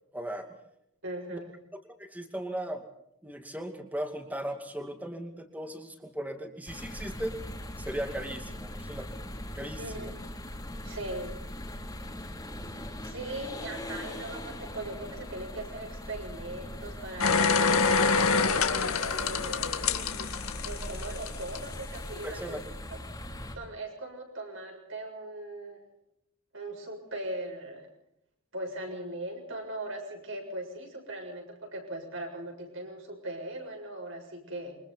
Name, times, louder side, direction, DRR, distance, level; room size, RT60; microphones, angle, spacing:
voice 1, 0.1-0.5 1.3-1.4 2.0-2.8 3.2-7.3 7.8-9.1 9.5-10.1 22.2-22.6, right 1 dB, 5° right, 5 dB, 2.5 m, -37 dB
voice 2, 1.0-1.5 9.8-10.1 10.8-11.4 13.0-17.7 18.1-20.0 20.6-22.6 22.9-23.0 23.5-25.8 26.5-27.9 28.5-34.8, right 1 dB, 60° right, 3 dB, 7.1 m, -39 dB
sound 1, 6.7-23.6, left 1 dB, 15° left, 3.0 m, -41 dB
sound 2, 17.2-21.6 21.9-22.0, left 5 dB, 75° left, 2.0 m, -26 dB
28.0 x 24.5 x 4.1 m, 0.79 s
head